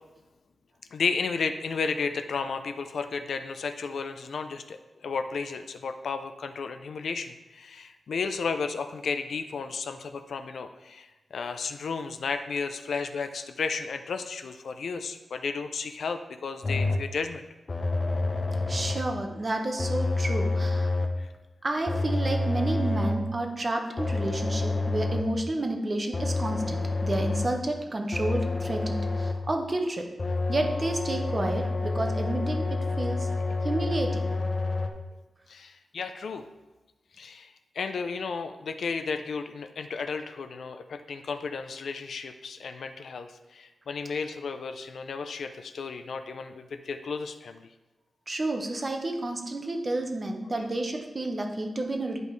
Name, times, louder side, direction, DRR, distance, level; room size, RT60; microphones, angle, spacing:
voice 1, 0.9-17.4 21.2-21.3 35.5-36.4 37.2-47.6, left 5 dB, 75° left, 8 dB, 0.5 m, -33 dB
sound 1, 16.6-17.2 17.7-19.2 19.8-21.3 21.9-23.3 24.0-25.4 26.1-27.7 28.1-29.5 30.2-34.9, left 2 dB, 35° left, 0.7 m, -28 dB
voice 2, 18.7-20.9 21.6-30.0 30.5-32.7 33.0-33.3 33.6-34.3 48.3-52.2, right 2 dB, 30° right, 3 dB, 0.9 m, -30 dB
10.5 x 5.2 x 3.2 m, 1.1 s
wide cardioid pair, 145°, 0 cm